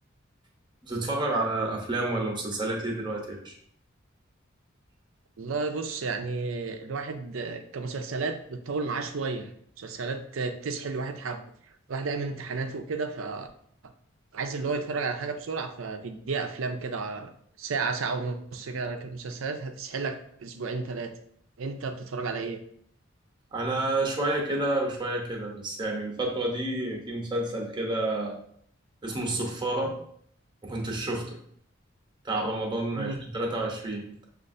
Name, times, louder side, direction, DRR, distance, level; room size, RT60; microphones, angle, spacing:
voice 1, 0.8-3.5 23.5-28.4 29.0-30.0 30.6-31.4 32.2-34.3, right 2 dB, 25° right, -1 dB, 0.8 m, -29 dB
voice 2, 5.4-9.5 9.8-11.4 11.9-13.5 14.3-17.3 17.6-21.1 21.6-22.6 32.9-33.2, right 4 dB, 80° right, 6 dB, 0.5 m, -32 dB
6.5 x 2.5 x 2.5 m, 0.64 s
head